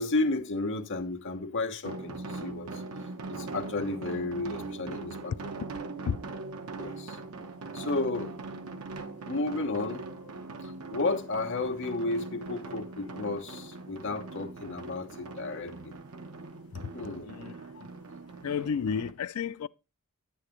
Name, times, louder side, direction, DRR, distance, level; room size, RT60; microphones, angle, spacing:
voice 1, 0.0-2.8 3.3-5.8 6.8-7.2 7.7-8.4 9.2-10.3 10.6-15.9 16.9-17.3, left 2 dB, 60° left, 1.1 m, -33 dB
sound 1, 1.8-19.1, right 3 dB, 85° right, 1.0 m, -41 dB
voice 2, 17.3-17.9 18.4-19.7, left 6 dB, 90° left, 0.4 m, -32 dB
9.7 x 8.4 x 3.1 m
head